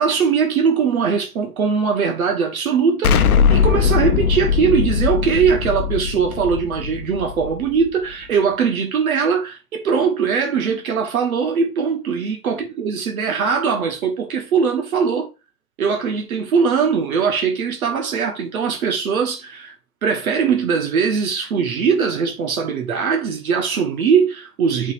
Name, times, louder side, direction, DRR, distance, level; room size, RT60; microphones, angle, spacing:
voice 1, 0.0-15.3 15.8-19.7 20.0-24.9, right 6 dB, 55° right, 1.4 m, -20 dB
Explosion, 3.0-7.9, left 7 dB, 60° left, 0.9 m, -19 dB
9.0 x 4.1 x 2.6 m
hypercardioid pair, 155°, 50 cm